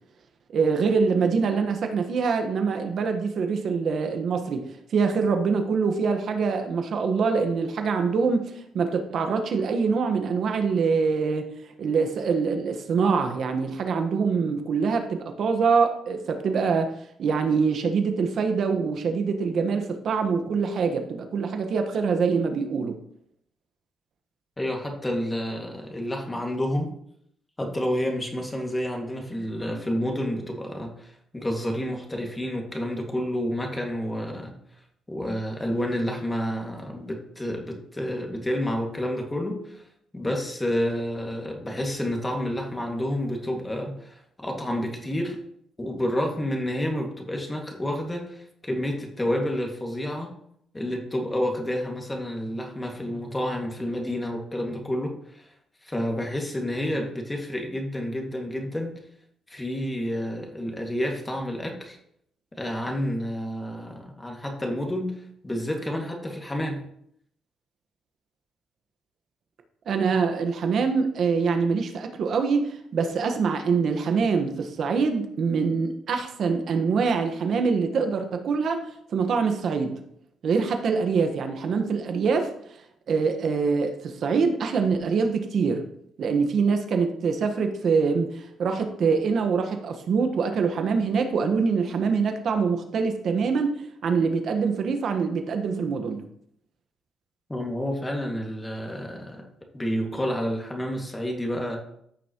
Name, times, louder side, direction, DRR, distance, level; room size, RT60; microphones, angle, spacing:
voice 1, 0.5-11.5 11.8-16.9 17.2-23.0 69.9-78.8 79.1-80.0 80.4-82.5 83.1-85.9 86.2-96.2, right 5 dB, 60° right, 6 dB, 1.3 m, -24 dB
voice 2, 24.6-26.9 27.6-34.6 35.1-39.8 40.1-45.4 45.8-50.3 50.7-55.5 55.8-58.9 59.5-62.0 62.5-65.1 65.4-66.8 97.5-99.4 99.7-101.8, equal, 15° left, 1 dB, 2.1 m, -29 dB
14.5 x 6.2 x 3.0 m, 0.71 s
cardioid pair, 90°, 0 cm